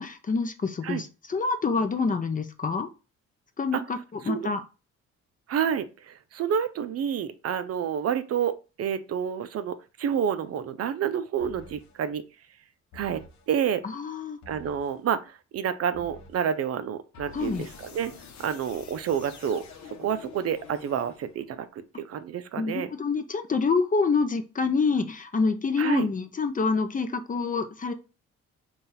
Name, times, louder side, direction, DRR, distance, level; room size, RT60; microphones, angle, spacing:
voice 1, 0.0-2.9 3.6-4.6 13.8-14.4 17.3-17.7 22.6-27.9, left 4 dB, 25° left, 0.6 m, -27 dB
voice 2, 5.5-12.2 12.9-13.8 14.5-15.2 15.5-18.1 18.4-19.6 20.0-21.7 22.1-22.9 25.8-26.1, right 8 dB, 55° right, 0.5 m, -29 dB
sound 1, 11.4-12.0 12.9-13.5 14.4-15.0 15.9-16.5 17.1-21.5, left 4 dB, 65° left, 0.8 m, -47 dB
3.8 x 2.4 x 4.0 m
cardioid pair, 90°, 30 cm